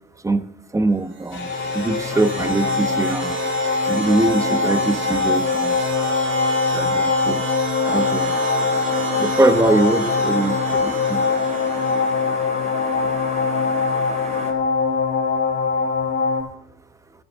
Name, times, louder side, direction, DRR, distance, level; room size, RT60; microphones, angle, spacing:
voice 1, 0.2-1.5 1.7-3.3 3.9-5.8 6.7-7.4 7.8-8.3 9.1-11.2, right 2 dB, 15° right, 11 dB, 0.9 m, -22 dB
sound 1, 1.1-12.3, right 6 dB, 75° right, 2.0 m, -32 dB
sound 2, 1.3-16.4, left 5 dB, 70° left, 3.6 m, -22 dB
sound 3, 7.8-14.5, right 2 dB, 35° right, 3.3 m, -34 dB
14.5 x 11.0 x 3.6 m, 0.73 s
cardioid pair, 90°, 20 cm